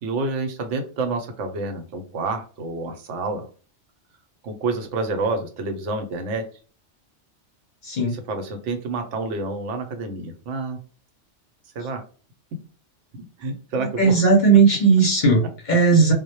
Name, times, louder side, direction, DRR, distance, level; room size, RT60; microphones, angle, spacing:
voice 1, 0.0-3.5 4.4-6.4 8.1-10.8 11.8-12.0 13.1-14.1, right 3 dB, 85° right, 5 dB, 0.9 m, -28 dB
voice 2, 7.8-8.1 14.0-16.1, right 4 dB, 50° left, 0 dB, 0.6 m, -16 dB
2.1 x 2.0 x 2.8 m, 0.39 s
omnidirectional pair, 1.2 m